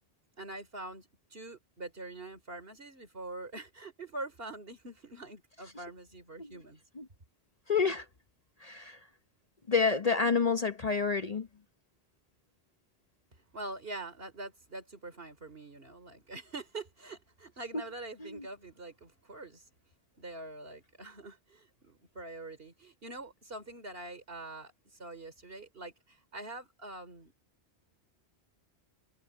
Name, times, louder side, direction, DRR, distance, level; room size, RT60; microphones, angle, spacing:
voice 1, 0.4-6.8 13.3-19.6 20.2-24.7 25.0-27.3, right 2 dB, 60° right, 3.4 m, -44 dB
voice 2, 7.7-8.0 8.6-9.0 9.7-11.5 18.2-18.4, left 5 dB, 40° left, 0.9 m, -28 dB
omnidirectional pair, 1.1 m